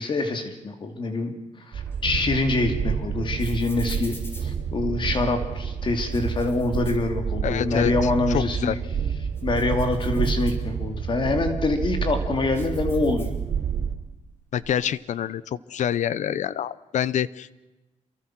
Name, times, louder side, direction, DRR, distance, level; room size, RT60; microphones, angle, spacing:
voice 1, 0.0-1.3 1.7-4.1 4.4-8.8 9.4-13.3, left 2 dB, 40° left, 6 dB, 2.9 m, -25 dB
Train, 1.7-13.9, right 7 dB, 70° right, 4.0 m, -29 dB
sound 1, 1.9-5.3 5.9-7.7 8.1-8.2 8.7-11.1 11.6-13.8 14.1-14.9, left 1 dB, 20° left, 5.1 m, -47 dB
voice 2, 7.4-7.9 8.3-8.8 14.5-17.6, left 10 dB, 75° left, 18 dB, 0.8 m, -26 dB
27.5 x 23.5 x 6.2 m, 1.1 s
wide cardioid pair, 145°, 12 cm